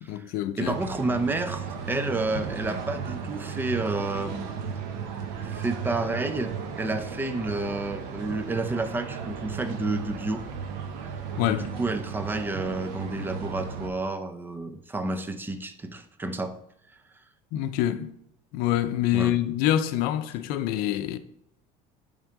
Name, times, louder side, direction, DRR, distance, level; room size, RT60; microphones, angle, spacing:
voice 1, 0.0-0.8 11.4-11.7 17.5-18.1 18.5-21.2, left 12 dB, 70° left, 0.6 m, -26 dB
voice 2, 0.6-4.5 5.4-10.4 11.5-16.6 19.1-19.3, right 2 dB, 15° right, 0.5 m, -30 dB
sound 1, 0.6-13.9, right 6 dB, 80° right, 1.0 m, -35 dB
8.3 x 3.6 x 3.7 m
cardioid pair, 130°, 16 cm